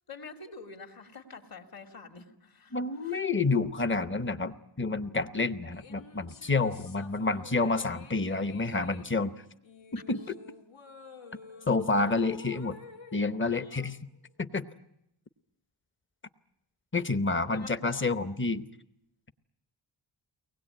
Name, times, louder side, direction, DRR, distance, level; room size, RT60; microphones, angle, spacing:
voice 1, 0.1-2.8 3.0-3.2 7.0-7.3 13.5-13.9 17.5-18.1, left 4 dB, 50° left, 4 dB, 2.4 m, -47 dB
voice 2, 2.7-9.3 9.9-10.2 11.7-12.8 13.1-14.0 14.4-14.7 16.9-18.6, left 3 dB, 25° left, 11 dB, 0.9 m, -29 dB
sound 1, 5.7-14.3, left 5 dB, 85° left, 1.9 m, -51 dB
24.0 x 20.0 x 8.8 m, 0.83 s
wide cardioid pair, 180°, 46 cm